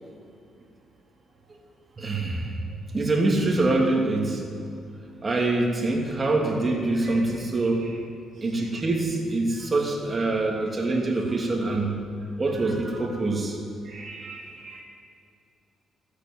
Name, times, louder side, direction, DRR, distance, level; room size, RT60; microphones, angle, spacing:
voice 1, 2.0-2.6 2.9-4.4 5.2-7.9 8.4-12.0 12.4-13.6, right 2 dB, 30° right, -1 dB, 2.9 m, -25 dB
voice 2, 7.6-7.9 9.6-9.7 12.5-13.0 13.8-14.8, right 3 dB, 50° right, -2 dB, 2.4 m, -43 dB
14.0 x 8.3 x 9.7 m, 2.5 s
cardioid pair, 90°, 0 cm